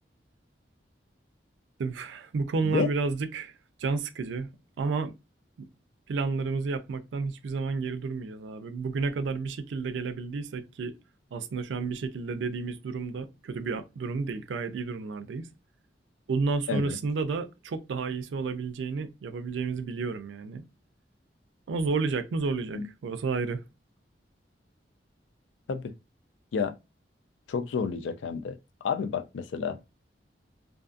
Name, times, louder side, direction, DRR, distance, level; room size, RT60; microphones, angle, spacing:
voice 1, 1.8-3.5 3.8-4.5 4.8-5.1 5.6-5.7 6.1-10.9 11.3-15.5 16.3-20.7 21.7-23.6, right 4 dB, 80° right, 0.4 m, -31 dB
voice 2, 27.5-28.6 28.8-29.8, left 5 dB, 85° left, 0.4 m, -30 dB
2.5 x 2.4 x 2.4 m
head